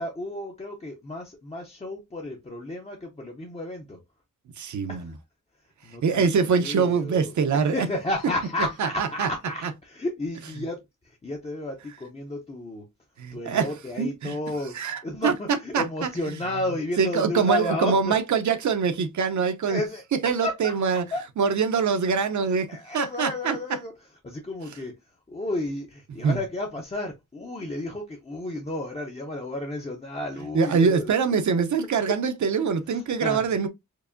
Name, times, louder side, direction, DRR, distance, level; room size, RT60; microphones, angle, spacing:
voice 1, 0.0-4.0 4.9-5.1 5.8-12.8 13.3-14.8 15.0-18.1 19.7-20.0 20.4-20.8 21.1-21.2 22.7-23.9 24.2-25.0 25.3-31.4 32.9-33.4, left 1 dB, 20° left, 0.6 m, -32 dB
voice 2, 4.6-5.1 6.0-7.9 8.8-9.3 13.2-13.7 14.0-14.4 14.7-15.3 15.7-16.1 17.0-19.8 20.2-21.0 21.4-22.7 22.9-23.6 26.2-26.4 30.5-33.7, right 6 dB, 65° right, 0.7 m, -24 dB
4.6 x 2.6 x 2.5 m
wide cardioid pair, 180°, 31 cm